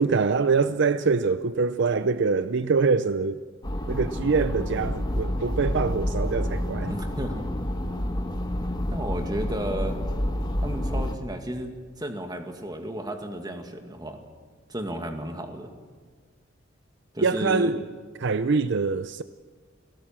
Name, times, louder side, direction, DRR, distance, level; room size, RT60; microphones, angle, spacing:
voice 1, 0.0-3.4 3.9-6.9 17.2-17.8 18.2-19.2, right 4 dB, 60° right, 0.6 m, -24 dB
sound 1, 3.6-11.2, left 1 dB, 20° left, 1.5 m, -29 dB
voice 2, 6.8-7.5 8.9-10.0 10.6-14.2 14.7-15.7 17.1-17.7, right 1 dB, 20° right, 2.1 m, -33 dB
29.0 x 17.0 x 7.4 m
head